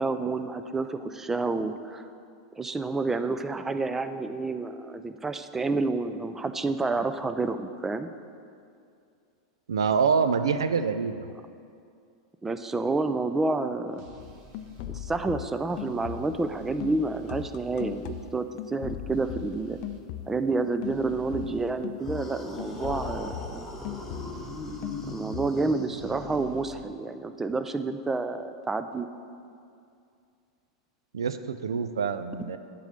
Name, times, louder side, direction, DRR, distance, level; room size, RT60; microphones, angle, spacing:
voice 1, 0.0-2.0 2.5-8.1 12.4-14.0 14.9-19.8 20.3-23.7 25.1-29.1, right 3 dB, 15° right, 10 dB, 0.4 m, -29 dB
voice 2, 9.7-11.2 31.1-32.6, right 6 dB, 80° right, 11 dB, 0.4 m, -26 dB
sound 1, 14.0-14.9 15.7-18.3 19.1-20.0 20.8-21.8 22.6-25.2 26.0-26.8, right 4 dB, 50° right, 1.0 m, -49 dB
sound 2, 14.2-16.5 16.8-20.5 20.8-24.6 24.8-25.6, left 12 dB, 55° left, 0.4 m, -39 dB
sound 3, 22.0-26.8, left 2 dB, 15° left, 1.2 m, -39 dB
9.1 x 3.8 x 6.5 m, 2.4 s
hypercardioid pair, 100°, 2 cm